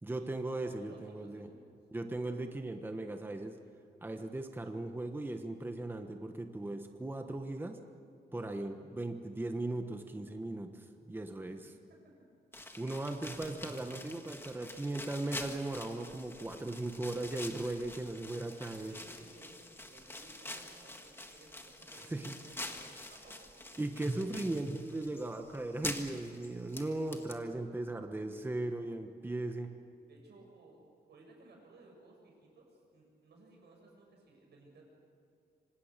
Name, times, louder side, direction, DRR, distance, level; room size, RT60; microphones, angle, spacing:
voice 1, 0.0-1.5 1.9-3.5 4.0-7.8 8.3-11.6 12.8-19.0 22.1-22.4 23.8-29.7, right 2 dB, 10° right, 5 dB, 1.2 m, -38 dB
voice 2, 0.6-1.7 8.7-9.0 11.9-12.3 18.2-23.5 27.6-27.8 28.6-29.1 30.1-34.8, right 2 dB, 85° right, 0 dB, 8.0 m, -59 dB
sound 1, 12.5-27.3, left 1 dB, 15° left, 1.8 m, -46 dB
26.0 x 26.0 x 6.7 m, 2.4 s
wide cardioid pair, 170°, 17 cm